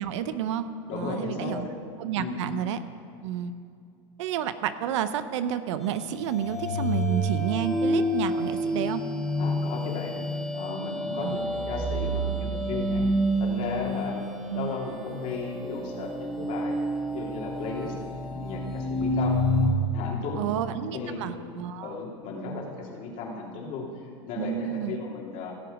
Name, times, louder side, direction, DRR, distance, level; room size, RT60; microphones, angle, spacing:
voice 1, 0.0-1.7 2.0-2.8 3.2-3.5 4.2-9.0 11.2-11.4 14.5-14.8 20.4-22.0 24.4-25.0, right 9 dB, 75° right, 12 dB, 0.7 m, -30 dB
voice 2, 0.9-1.7 2.2-2.4 9.4-10.2 10.5-13.0 13.4-14.3 14.5-16.8 17.1-17.9 18.3-19.4 19.9-20.5 20.9-21.2 21.8-23.9 24.3-25.5, left 4 dB, 55° left, -1 dB, 2.6 m, -35 dB
sound 1, 5.8-19.7, equal, ahead, 2.0 m, -29 dB
17.0 x 7.0 x 5.1 m, 2.3 s
hypercardioid pair, 110°, 16 cm